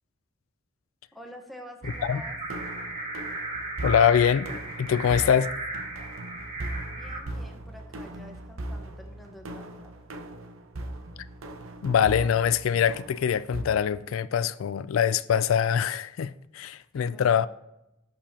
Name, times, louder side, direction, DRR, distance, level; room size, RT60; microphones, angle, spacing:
voice 1, 1.1-2.4 6.9-9.9 16.9-17.5, equal, ahead, 1.1 m, -47 dB
sound 1, 1.8-7.2, right 2 dB, 35° right, 1.5 m, -36 dB
sound 2, 1.8-13.6, right 1 dB, 85° right, 0.9 m, -39 dB
voice 2, 3.8-4.5 4.8-5.5 11.8-17.5, left 8 dB, 85° left, 0.3 m, -23 dB
11.0 x 6.9 x 2.8 m
head